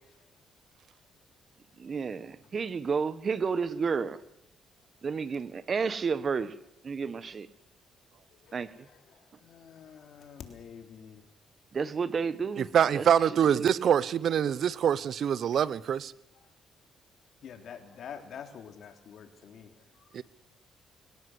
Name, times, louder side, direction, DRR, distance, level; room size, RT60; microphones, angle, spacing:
voice 1, 1.8-4.2 5.0-6.5 6.8-7.5 8.5-8.7 11.7-13.1 13.5-13.9, right 5 dB, 45° right, 1.4 m, -31 dB
voice 2, 8.3-11.2 16.3-16.5 17.4-20.2, left 7 dB, 65° left, 3.5 m, -47 dB
voice 3, 12.6-16.1 20.1-20.2, right 8 dB, 65° right, 0.8 m, -25 dB
23.5 x 18.0 x 8.0 m
cardioid pair, 90°, 0 cm